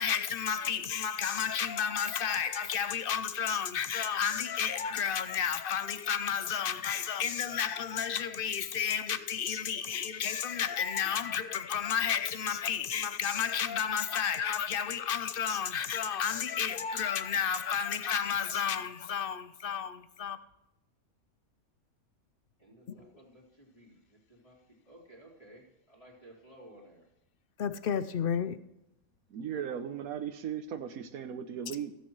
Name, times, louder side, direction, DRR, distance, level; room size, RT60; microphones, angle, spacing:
voice 1, 0.0-20.4 22.9-23.0 27.6-28.6, left 8 dB, 65° left, 0.5 m, -32 dB
voice 2, 22.6-24.6 24.9-27.1, right 1 dB, 25° left, 3.4 m, -55 dB
voice 3, 29.3-31.9, right 8 dB, 80° right, 1.2 m, -37 dB
15.5 x 8.4 x 3.1 m
omnidirectional pair, 1.5 m